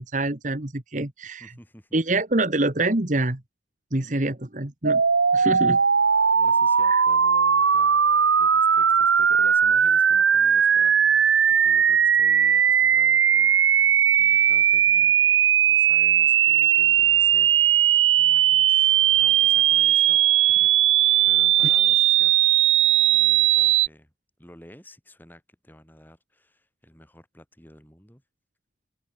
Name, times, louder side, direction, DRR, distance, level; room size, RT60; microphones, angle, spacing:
voice 1, 0.0-1.5 1.9-3.4 3.9-5.0 5.3-5.8 6.9-7.0, right 2 dB, 40° right, 1.7 m, -25 dB
voice 2, 1.4-2.0 6.3-8.0 8.4-13.6 13.8-22.3 23.1-24.1 24.4-28.2, equal, 10° left, 6.4 m, -51 dB
sound 1, 4.8-23.9, right 9 dB, 90° right, 1.0 m, -19 dB
head